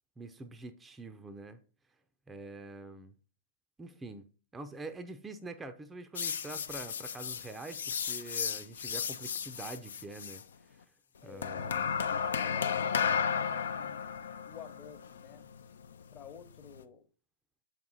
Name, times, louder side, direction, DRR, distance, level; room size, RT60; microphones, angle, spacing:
voice 1, 0.2-1.6 2.3-3.2 3.8-10.8 11.2-11.8, right 2 dB, 10° right, 0.5 m, -45 dB
sound 1, 6.2-10.4 11.4-16.8, left 7 dB, 60° left, 0.5 m, -34 dB
voice 2, 11.2-15.5 16.1-17.0, left 8 dB, 25° left, 1.0 m, -51 dB
7.1 x 4.8 x 3.9 m
figure-of-eight pair, 110°, 0 cm